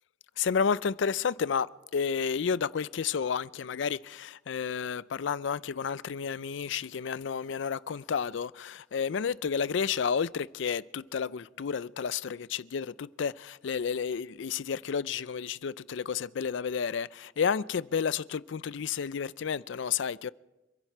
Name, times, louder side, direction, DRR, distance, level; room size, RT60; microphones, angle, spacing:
voice 1, 0.4-20.3, left 6 dB, 75° left, 0.4 m, -31 dB
27.0 x 10.5 x 4.5 m
head